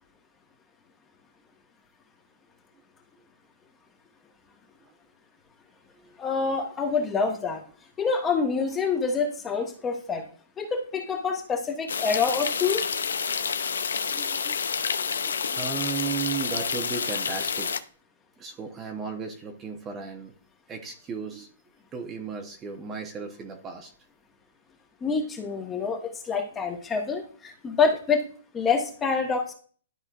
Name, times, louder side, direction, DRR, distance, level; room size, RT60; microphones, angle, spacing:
voice 1, 6.2-7.6 8.0-10.2 10.6-12.9 25.0-28.3 28.5-29.5, left 5 dB, 15° left, 2 dB, 1.4 m, -26 dB
sound 1, 11.9-17.8, left 6 dB, 90° left, 0.6 m, -29 dB
voice 2, 14.1-14.6 14.9-17.7 18.4-20.3 20.7-21.5 21.9-23.9, right 6 dB, 20° right, 4 dB, 0.9 m, -35 dB
12.0 x 4.3 x 2.5 m, 0.43 s
hypercardioid pair, 145°, 0 cm